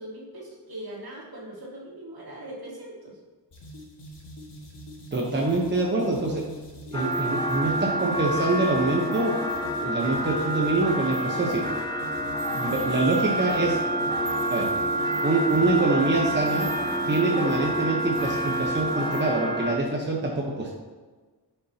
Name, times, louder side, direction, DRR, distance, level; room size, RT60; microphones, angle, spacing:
voice 1, 0.0-3.2 12.6-13.0, right 1 dB, 60° right, -3 dB, 2.0 m, -40 dB
sound 1, 3.5-19.4, equal, 85° left, 1.9 m, -44 dB
voice 2, 5.1-6.4 6.9-9.3 9.8-11.6 12.5-13.8 14.5-14.7 15.2-16.7 17.1-20.7, right 2 dB, 25° right, -2 dB, 0.9 m, -25 dB
sound 2, 6.9-19.7, right 1 dB, 10° left, 0.7 m, -28 dB
sound 3, 12.4-13.1 14.2-15.1 16.4-17.2 18.1-18.8, left 2 dB, 45° left, 1.5 m, -49 dB
9.7 x 5.6 x 2.8 m, 1.3 s
wide cardioid pair, 115°, 41 cm